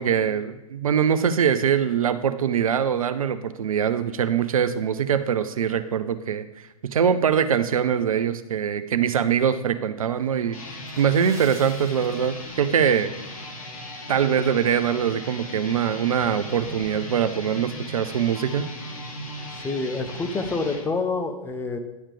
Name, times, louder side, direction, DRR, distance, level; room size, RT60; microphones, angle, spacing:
voice 1, 0.0-6.4 6.8-10.6 11.0-13.1 14.1-18.7, right 8 dB, 65° right, 11 dB, 0.6 m, -23 dB
sound 1, 10.4-20.8, left 1 dB, 70° left, 2.2 m, -37 dB
Water / Splash splatter, 10.9-12.7 13.0-13.3 13.8-14.0 14.5-14.6, right 4 dB, 15° right, 1.1 m, -45 dB
voice 2, 19.6-21.8, left 3 dB, 10° left, 6 dB, 0.7 m, -27 dB
10.5 x 7.2 x 3.3 m, 0.97 s
figure-of-eight pair, 110°, 19 cm